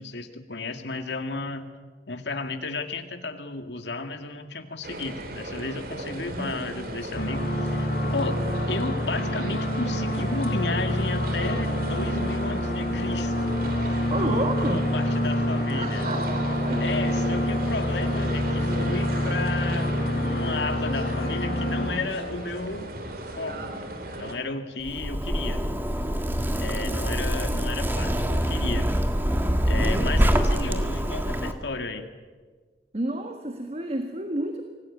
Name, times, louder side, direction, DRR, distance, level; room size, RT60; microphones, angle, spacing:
voice 1, 0.0-1.7 2.1-8.4 8.7-16.1 16.8-22.9 23.4-23.7 24.2-25.7 26.6-28.9 29.7-32.1, left 3 dB, 80° left, 6 dB, 2.2 m, -33 dB
sound 1, 4.8-24.3, right 1 dB, 55° right, 3.0 m, -36 dB
sound 2, 7.1-21.9, left 1 dB, 55° left, 4.9 m, -27 dB
voice 2, 14.1-14.9 15.7-16.9 32.9-34.6, right 1 dB, 35° right, 6 dB, 1.7 m, -30 dB
Zipper (clothing), 24.9-31.5, equal, 10° right, 1.7 m, -25 dB
25.0 x 17.5 x 9.9 m, 1.4 s
head